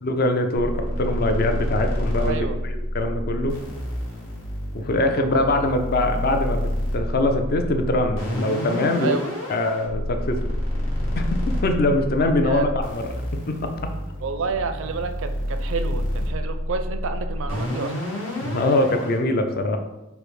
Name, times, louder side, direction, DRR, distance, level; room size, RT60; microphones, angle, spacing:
voice 1, 0.0-3.6 4.7-9.2 9.5-10.4 11.1-13.0 13.5-13.7 18.4-19.8, left 1 dB, 40° left, 5 dB, 0.4 m, -23 dB
sound 1, 0.6-19.1, left 1 dB, 60° left, 1.4 m, -28 dB
voice 2, 2.2-2.6 5.1-5.9 9.0-9.3 12.4-12.7 14.2-17.9, right 4 dB, 60° right, 8 dB, 0.4 m, -29 dB
5.0 x 2.1 x 4.7 m, 0.98 s
head